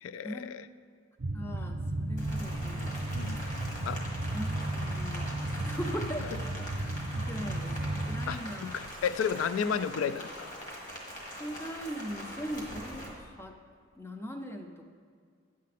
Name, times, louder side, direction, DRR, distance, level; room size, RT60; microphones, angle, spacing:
voice 1, 0.0-0.7 3.1-3.5 3.9-4.1 6.8-6.9 8.3-10.5, left 7 dB, 90° left, 15 dB, 0.3 m, -33 dB
sound 1, 1.2-8.4, right 1 dB, 55° right, 0.5 m, -34 dB
voice 2, 1.3-3.0 4.3-5.3 5.6-6.6 7.1-9.0 9.6-9.7 11.4-13.5 14.0-14.8, equal, 10° left, 5 dB, 0.5 m, -40 dB
Rain, 2.2-13.1, equal, 40° left, 1.6 m, -42 dB
9.2 x 7.4 x 4.1 m, 2.1 s
head